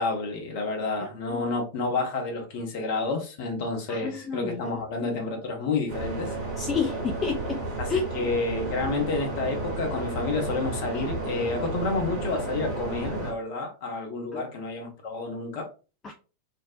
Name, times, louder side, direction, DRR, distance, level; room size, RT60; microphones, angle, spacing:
voice 1, 0.0-6.3 7.8-15.7, left 3 dB, 50° left, 0.7 m, -30 dB
voice 2, 3.9-4.8 6.6-7.6 7.9-8.1 14.3-14.4 16.0-16.1, left 5 dB, 25° left, 0.3 m, -30 dB
sound 1, 5.9-13.3, right 2 dB, 45° right, 1.1 m, -32 dB
2.6 x 2.0 x 2.4 m
figure-of-eight pair, 90°, 0 cm